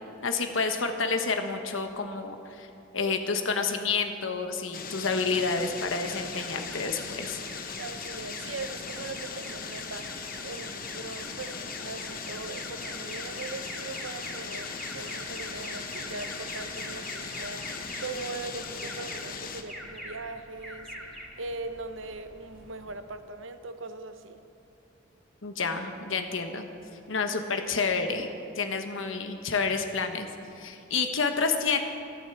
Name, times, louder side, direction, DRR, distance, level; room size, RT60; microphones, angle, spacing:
voice 1, 0.0-2.7 2.9-7.4 25.4-26.7 27.1-28.3 28.6-30.3 30.5-31.8, left 4 dB, 75° left, 6 dB, 1.1 m, -29 dB
sound 1, 4.7-19.6, left 5 dB, 45° left, 1.0 m, -39 dB
Alarm, 5.4-23.1, equal, ahead, 2.4 m, -44 dB
voice 2, 7.8-11.6 11.8-21.1 21.4-24.4, right 3 dB, 75° right, 9 dB, 0.9 m, -40 dB
13.0 x 13.0 x 7.0 m, 2.6 s
head